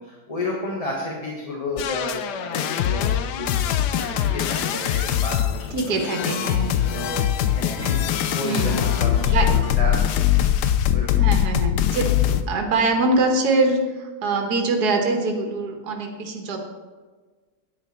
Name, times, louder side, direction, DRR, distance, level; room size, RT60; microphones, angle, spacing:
voice 1, 0.0-5.5 5.9-7.1 7.5-8.0 8.4-10.6 10.9-11.3, left 1 dB, 25° left, -3 dB, 1.3 m, -32 dB
sound 1, 1.8-12.4, left 10 dB, 75° left, 1.2 m, -22 dB
voice 2, 5.7-6.8 8.4-8.9 9.3-9.7 11.2-12.1 12.5-16.6, right 3 dB, 70° right, 3 dB, 1.7 m, -23 dB
9.9 x 9.1 x 4.3 m, 1.4 s
omnidirectional pair, 1.8 m